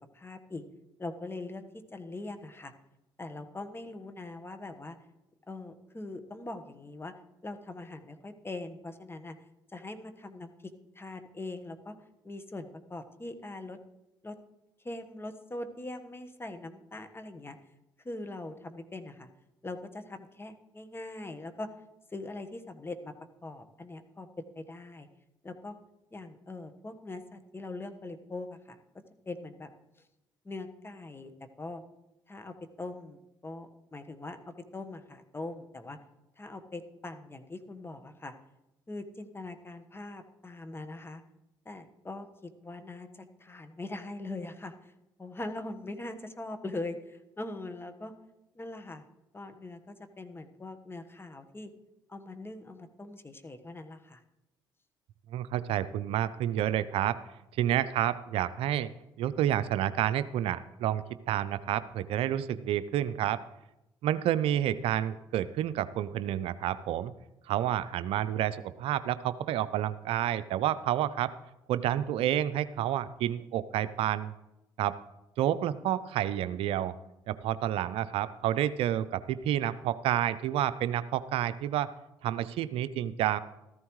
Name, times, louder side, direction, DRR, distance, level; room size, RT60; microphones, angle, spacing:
voice 1, 0.1-0.6 1.0-2.7 3.2-5.0 5.5-7.1 7.4-9.3 9.7-11.9 12.2-13.8 14.2-14.4 14.8-17.6 18.0-19.3 19.6-21.7 22.1-23.1 23.4-24.3 24.5-25.1 25.4-25.8 26.1-29.7 30.4-31.8 32.3-36.0 36.4-38.3 38.9-41.2 41.6-44.9 45.2-48.1 48.5-49.0 49.3-51.7 52.1-54.2, left 2 dB, 25° left, 8 dB, 1.3 m, -42 dB
voice 2, 55.3-57.2 57.6-58.9 59.2-63.4 64.0-67.1 67.5-71.3 71.7-74.3 74.8-75.0 75.4-76.9 77.3-81.9 82.2-83.4, right 11 dB, 70° right, 14 dB, 0.5 m, -29 dB
14.0 x 14.0 x 3.2 m, 0.93 s
hypercardioid pair, 55°, 10 cm